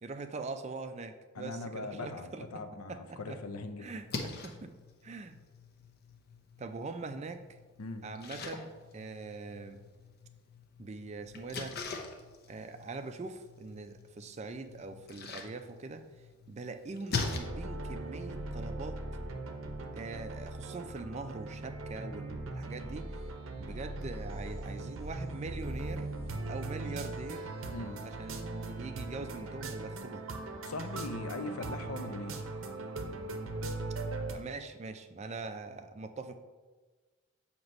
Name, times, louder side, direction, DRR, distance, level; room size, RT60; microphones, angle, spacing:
voice 1, 0.0-3.4 3.8-4.7 5.0-5.4 6.6-7.4 8.0-9.8 10.8-11.8 12.5-16.1 16.5-19.0 19.9-23.1 23.6-26.1 26.4-27.5 28.0-30.2 34.3-36.4, right 3 dB, 30° right, 9 dB, 0.3 m, -42 dB
voice 2, 1.3-3.9 7.8-8.0 27.7-28.0 30.6-32.4, left 2 dB, 90° left, 8 dB, 0.6 m, -40 dB
Splash splatter, 3.9-17.4, left 4 dB, 45° left, 0.6 m, -43 dB
sound 1, 17.1-34.3, right 2 dB, 65° right, 0.6 m, -39 dB
7.7 x 2.9 x 5.3 m, 1.4 s
head